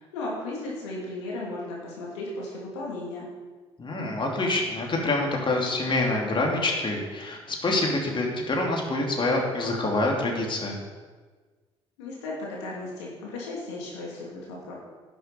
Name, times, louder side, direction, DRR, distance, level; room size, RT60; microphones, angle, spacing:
voice 1, 0.0-3.3 12.0-14.8, left 2 dB, 75° left, -3 dB, 2.6 m, -35 dB
voice 2, 3.8-10.8, left 2 dB, 35° left, 0 dB, 3.0 m, -26 dB
11.0 x 7.1 x 6.9 m, 1.4 s
hypercardioid pair, 50°, 14 cm